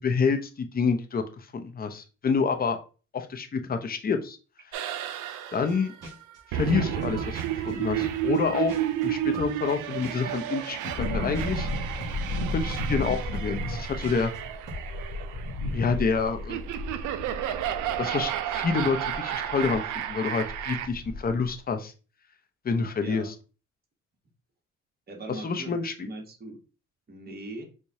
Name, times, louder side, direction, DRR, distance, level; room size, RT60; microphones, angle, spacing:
voice 1, 0.0-2.8 3.1-4.4 5.5-6.0 6.5-8.7 9.0-11.7 12.5-14.3 15.7-16.6 18.0-21.9 22.6-23.3 25.3-26.1, left 5 dB, 30° left, 7 dB, 0.6 m, -28 dB
sound 1, 4.7-20.9, right 12 dB, 80° right, 0.5 m, -32 dB
sound 2, 5.7-5.8 6.0-9.1 9.3-14.4 14.7-14.9, equal, 55° right, 1.8 m, -43 dB
sound 3, 11.0-19.8 20.1-20.2 20.4-21.5 21.7-21.8, left 1 dB, 75° left, 1.0 m, -34 dB
voice 2, 23.0-23.3 25.1-26.6 27.1-27.6, right 2 dB, 30° right, 2 dB, 1.1 m, -40 dB
4.7 x 2.2 x 2.7 m, 0.34 s
cardioid pair, 90°, 30 cm